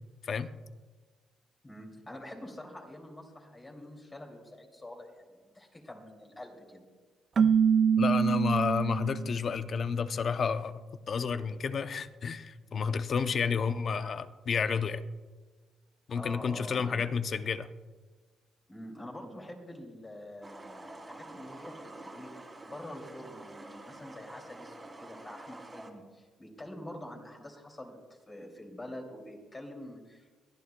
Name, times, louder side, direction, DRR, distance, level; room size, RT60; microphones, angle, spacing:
voice 1, 1.6-6.9 13.5-13.7 16.1-17.1 18.7-22.3 22.6-28.0 28.3-30.4, left 1 dB, 20° left, 0 dB, 2.7 m, -46 dB
Keyboard (musical), 7.4-9.3, right 7 dB, 45° right, 0.3 m, -25 dB
voice 2, 8.0-10.8 11.1-15.0 16.1-17.7, left 6 dB, 50° left, 11 dB, 0.6 m, -30 dB
sound 1, 20.4-25.9, right 2 dB, 20° right, 2.4 m, -48 dB
23.0 x 11.5 x 2.3 m, 1.3 s
cardioid pair, 90°, 0 cm